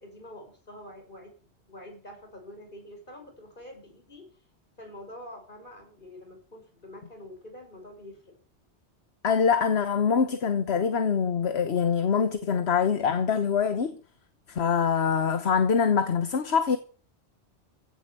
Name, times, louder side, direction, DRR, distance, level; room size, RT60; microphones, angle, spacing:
voice 1, 0.0-1.4 1.7-4.3 4.8-8.4, left 1 dB, 45° left, 5.8 m, -46 dB
voice 2, 9.2-13.9 14.5-16.8, left 6 dB, 70° left, 1.3 m, -24 dB
16.0 x 8.0 x 7.6 m
omnidirectional pair, 1.1 m